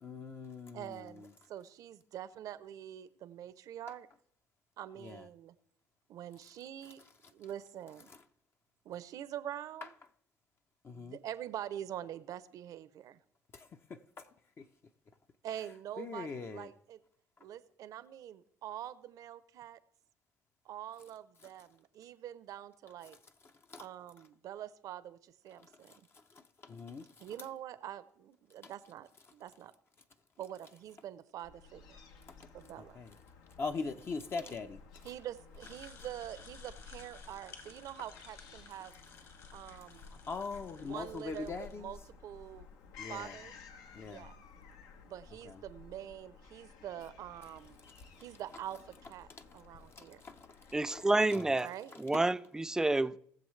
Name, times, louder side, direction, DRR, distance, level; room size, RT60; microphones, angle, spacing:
voice 1, 0.0-1.3 5.0-5.3 8.1-8.2 9.8-9.9 10.8-11.2 13.5-14.7 16.0-16.7 23.7-23.9 25.6-27.3 28.6-28.7 32.3-33.1 33.6-35.1 40.0-41.9 43.0-43.4 43.9-44.3 45.4-45.6 49.3-49.4 50.0-51.6 51.9-52.2, left 4 dB, 35° left, 0.7 m, -43 dB
voice 2, 0.7-4.1 4.8-5.5 6.1-7.0 7.3-8.1 8.8-9.9 10.9-13.2 15.4-17.0 17.4-19.8 20.6-23.2 23.8-25.9 27.2-29.7 30.4-32.0 32.5-33.0 35.0-38.9 39.5-40.1 40.8-42.7 43.1-43.5 44.0-44.4 45.0-47.8 48.2-50.2 51.6-51.9, right 11 dB, 60° right, 0.7 m, -45 dB
Fowl / Gull seagull, 31.4-51.3, left 5 dB, 75° left, 1.1 m, -55 dB
sound 1, 35.6-41.7, left 5 dB, 55° left, 2.6 m, -56 dB
voice 3, 50.7-51.7 52.0-53.2, right 2 dB, 10° right, 0.4 m, -29 dB
19.5 x 7.1 x 3.2 m
cardioid pair, 95°, 7 cm